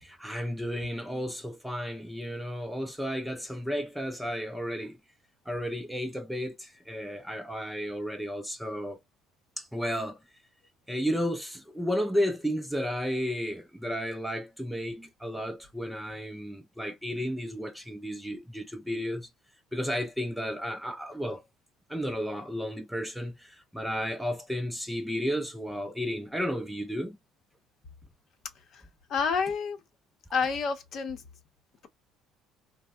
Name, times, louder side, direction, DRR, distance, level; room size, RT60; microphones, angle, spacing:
voice 1, 0.0-4.9 5.5-9.0 9.6-10.2 10.9-19.3 19.7-21.4 21.9-27.2, equal, ahead, 0.4 m, -33 dB
voice 2, 29.1-29.8 30.3-31.2, left 5 dB, 50° left, 0.7 m, -28 dB
3.3 x 2.0 x 2.2 m
cardioid pair, 125°, 0 cm